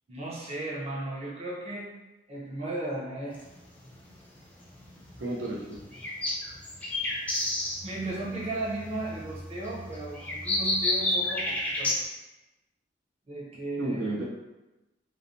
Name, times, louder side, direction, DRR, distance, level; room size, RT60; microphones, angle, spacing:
voice 1, 0.1-1.9 2.3-3.4 7.8-12.0 13.3-14.0, right 2 dB, 35° right, -5 dB, 0.6 m, -35 dB
sound 1, 3.3-12.0, left 1 dB, 10° left, 0.4 m, -31 dB
voice 2, 5.2-5.8 13.8-14.2, right 2 dB, 80° right, -3 dB, 0.5 m, -32 dB
3.1 x 2.1 x 2.5 m, 1.0 s
head